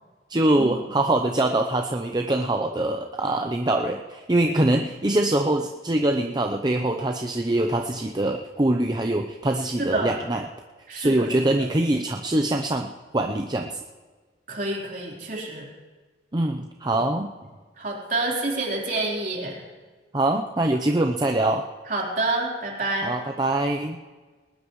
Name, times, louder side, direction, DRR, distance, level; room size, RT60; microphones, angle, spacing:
voice 1, 0.3-10.4 10.9-12.9 13.1-13.8 16.3-17.3 20.1-21.6 23.0-24.0, right 1 dB, 25° right, 3 dB, 0.7 m, -23 dB
voice 2, 9.8-10.1 10.9-11.3 14.5-15.7 16.9-17.0 17.8-19.6 21.9-23.1, right 2 dB, 50° right, -2 dB, 4.1 m, -28 dB
20.5 x 19.5 x 3.2 m, 1.4 s
head